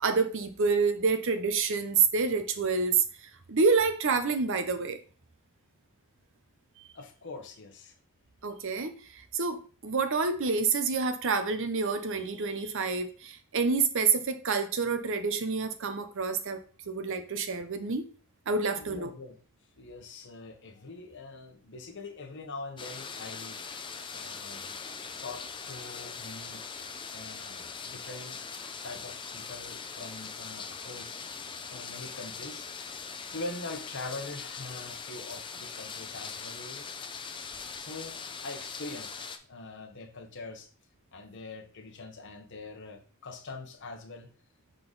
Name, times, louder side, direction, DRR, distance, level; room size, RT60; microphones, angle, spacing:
voice 1, 0.0-5.0 8.4-16.6 16.9-18.1 18.5-19.1, right 4 dB, 60° right, 0.7 m, -28 dB
voice 2, 6.9-7.9 18.7-19.4 19.8-23.6 24.1-24.8 25.2-26.6 27.1-28.4 28.8-31.2 31.7-32.7 33.3-36.9 37.7-40.7 41.1-44.3, left 3 dB, 55° left, 1.0 m, -43 dB
sound 1, 22.8-39.4, left 5 dB, 20° left, 0.5 m, -41 dB
6.8 x 3.8 x 3.9 m
head